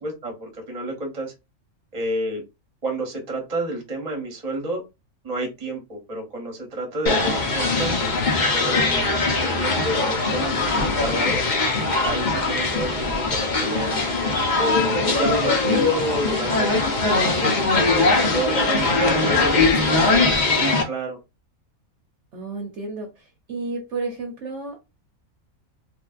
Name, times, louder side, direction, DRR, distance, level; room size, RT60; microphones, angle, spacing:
voice 1, 0.0-1.3 1.9-2.4 2.8-4.8 5.2-8.0 8.5-11.4 12.0-14.0 14.6-16.8 17.4-21.2, right 1 dB, 30° right, 0.9 m, -30 dB
sound 1, 7.1-20.8, left 3 dB, 45° left, 0.7 m, -21 dB
voice 2, 7.8-8.3 18.9-20.7 22.3-24.8, right 3 dB, 60° right, 1.0 m, -33 dB
3.2 x 2.6 x 2.4 m
omnidirectional pair, 1.5 m